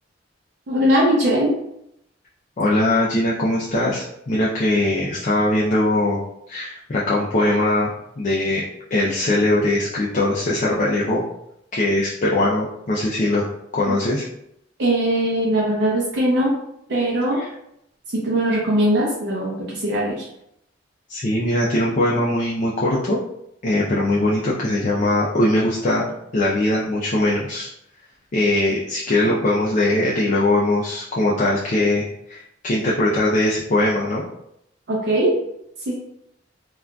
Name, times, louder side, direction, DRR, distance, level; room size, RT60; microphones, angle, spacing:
voice 1, 0.7-1.5 13.9-14.0 14.8-16.5 16.9-17.4 18.1-20.3 34.9-35.3 35.9-36.0, right 1 dB, 65° right, -4 dB, 0.6 m, -20 dB
voice 2, 2.6-6.2 6.5-8.6 8.9-11.3 11.7-13.4 13.7-14.2 17.4-17.5 21.1-23.2 23.6-26.1 26.3-27.7 28.3-34.2, left 1 dB, 40° left, -5 dB, 0.4 m, -21 dB
3.6 x 2.4 x 2.2 m, 0.78 s
head